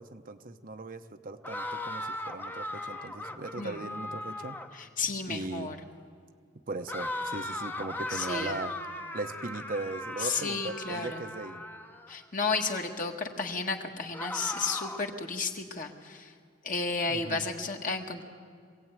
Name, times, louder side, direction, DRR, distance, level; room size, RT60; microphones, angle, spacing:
voice 1, 0.0-4.6 5.3-5.7 6.7-8.7 9.1-11.6 17.1-17.5, right 2 dB, 50° right, 8 dB, 0.9 m, -38 dB
sound 1, 1.4-4.8 6.9-12.1 14.1-15.2, left 1 dB, 10° left, 0.9 m, -38 dB
voice 2, 3.6-3.9 4.7-5.8 8.1-8.6 10.2-11.2 12.1-16.3 16.6-18.2, left 4 dB, 45° left, 3 dB, 1.8 m, -33 dB
24.5 x 16.5 x 9.1 m, 2.2 s
head